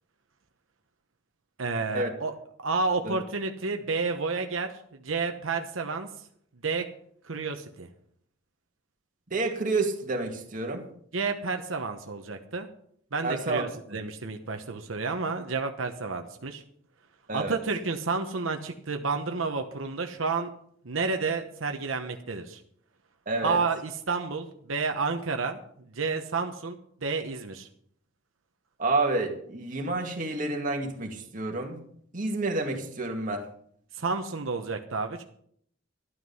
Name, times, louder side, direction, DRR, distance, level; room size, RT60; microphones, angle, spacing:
voice 1, 1.6-2.3 2.6-4.7 5.0-6.1 6.6-6.8 7.3-7.9 11.1-12.7 13.1-16.6 17.3-20.5 20.8-22.6 23.4-25.6 25.9-27.7 33.9-35.2, right 4 dB, 90° right, 5 dB, 1.1 m, -30 dB
voice 2, 9.3-10.8 13.2-13.6 17.3-17.6 23.3-23.6 28.8-31.8 32.1-33.4, right 2 dB, 40° right, 2 dB, 2.2 m, -29 dB
12.5 x 11.5 x 5.6 m, 0.65 s
head